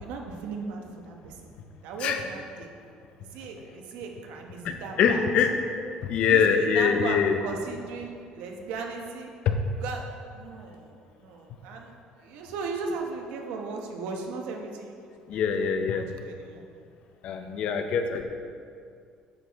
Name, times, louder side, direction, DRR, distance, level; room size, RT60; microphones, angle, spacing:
voice 1, 0.0-1.5 1.8-2.7 3.2-5.5 6.3-9.3 9.7-11.9 12.2-16.6, right 4 dB, 75° right, 2 dB, 1.0 m, -37 dB
voice 2, 5.0-5.5 6.0-7.4 9.5-9.6 15.3-16.1 17.2-18.2, left 7 dB, 45° left, 6 dB, 0.6 m, -23 dB
9.0 x 6.4 x 3.5 m, 2.3 s
cardioid pair, 180°, 3 cm